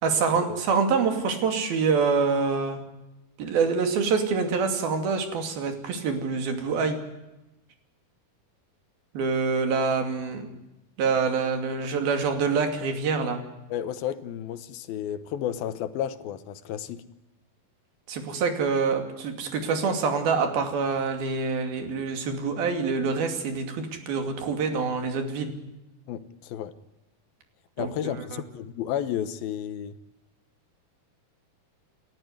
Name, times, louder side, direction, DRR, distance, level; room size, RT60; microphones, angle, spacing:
voice 1, 0.0-2.8 3.4-7.0 9.1-10.5 11.0-13.4 18.1-25.5 27.8-28.4, right 5 dB, 85° right, 4.5 m, -26 dB
voice 2, 13.7-17.0 26.1-26.7 27.8-30.0, left 10 dB, 85° left, 3.0 m, -32 dB
29.0 x 13.5 x 9.6 m
omnidirectional pair, 4.1 m